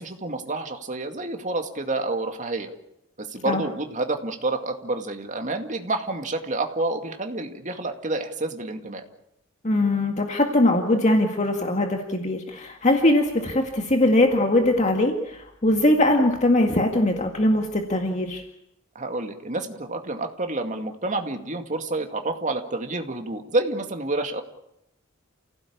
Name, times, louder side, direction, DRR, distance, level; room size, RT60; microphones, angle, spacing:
voice 1, 0.0-2.7 3.2-9.0 18.9-24.4, right 2 dB, 35° right, 5 dB, 2.3 m, -29 dB
voice 2, 9.6-18.4, left 1 dB, 35° left, 3 dB, 2.0 m, -21 dB
29.0 x 16.5 x 8.7 m, 0.83 s
head